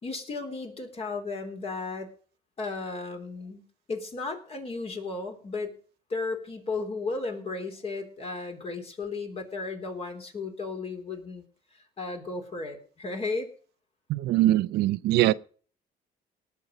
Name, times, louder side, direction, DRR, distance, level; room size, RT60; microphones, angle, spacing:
voice 1, 0.0-2.1 2.6-3.6 3.9-5.7 6.1-11.4 12.0-13.5, left 3 dB, 35° left, 3.6 m, -34 dB
voice 2, 14.1-15.3, right 15 dB, 80° right, 0.6 m, -22 dB
19.0 x 7.1 x 5.3 m
cardioid pair, 110°, 17 cm